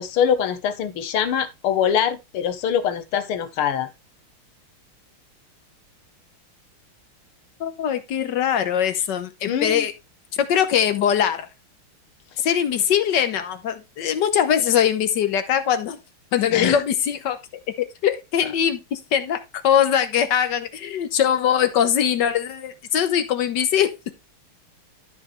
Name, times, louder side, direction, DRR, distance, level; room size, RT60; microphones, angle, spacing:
voice 1, 0.0-3.9 9.5-9.8 16.5-16.8, left 8 dB, 85° left, 1.9 m, -23 dB
voice 2, 7.6-9.9 10.3-11.5 12.4-16.0 16.3-17.4 17.8-24.2, left 9 dB, 60° left, 1.4 m, -22 dB
13.0 x 5.3 x 3.1 m
omnidirectional pair, 2.4 m